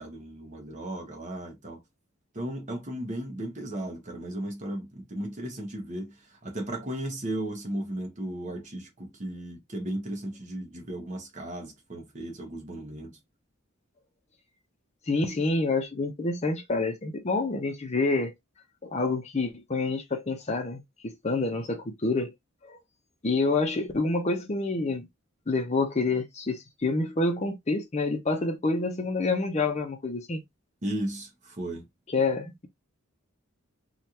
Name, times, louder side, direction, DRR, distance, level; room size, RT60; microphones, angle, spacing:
voice 1, 0.0-1.8 2.3-13.2 30.8-31.9, right 1 dB, 35° right, 1.0 m, -35 dB
voice 2, 15.1-18.3 18.8-22.3 22.7-22.8 23.2-25.1 25.5-30.4 32.1-32.7, left 3 dB, 30° left, 0.6 m, -28 dB
3.2 x 2.4 x 2.8 m
head